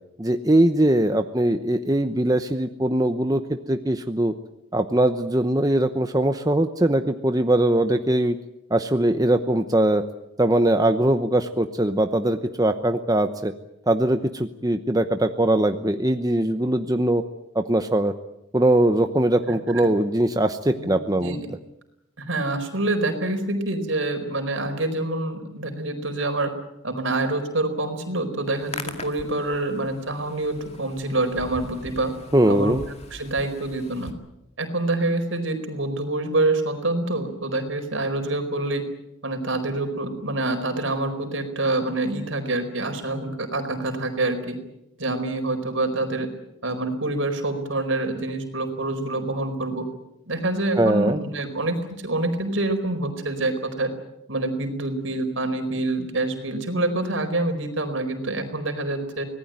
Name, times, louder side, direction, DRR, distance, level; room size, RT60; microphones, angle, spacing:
voice 1, 0.2-3.4 3.7-4.3 4.7-8.3 8.7-10.0 10.4-13.5 13.9-17.2 17.5-18.1 18.5-21.4 32.3-32.8 50.8-51.2, right 1 dB, 20° right, 7 dB, 0.9 m, -21 dB
voice 2, 20.8-21.5 22.2-26.5 26.8-32.1 32.5-32.8 33.1-34.1 34.6-38.8 39.2-44.6 45.0-46.3 46.6-49.8 50.3-53.9 54.3-59.2, right 2 dB, 70° right, 6 dB, 4.6 m, -26 dB
Hands, 28.4-34.1, left 3 dB, 30° left, 2.2 m, -41 dB
25.0 x 19.0 x 9.0 m, 0.86 s
head